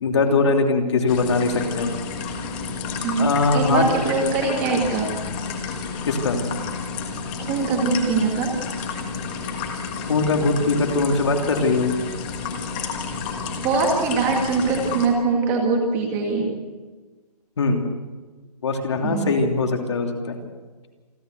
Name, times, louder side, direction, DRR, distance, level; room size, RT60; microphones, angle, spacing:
voice 1, 0.0-1.9 3.2-3.8 6.1-6.4 10.1-11.9 17.6-17.8 18.6-20.4, left 3 dB, 45° left, 3 dB, 3.0 m, -21 dB
sound 1, 1.1-15.1, left 5 dB, 15° left, 1.5 m, -31 dB
voice 2, 3.0-5.1 7.4-8.5 13.6-16.5 19.0-19.4, right 4 dB, 10° right, 1 dB, 1.9 m, -22 dB
28.0 x 12.0 x 8.1 m, 1.3 s
hypercardioid pair, 175°, 20 cm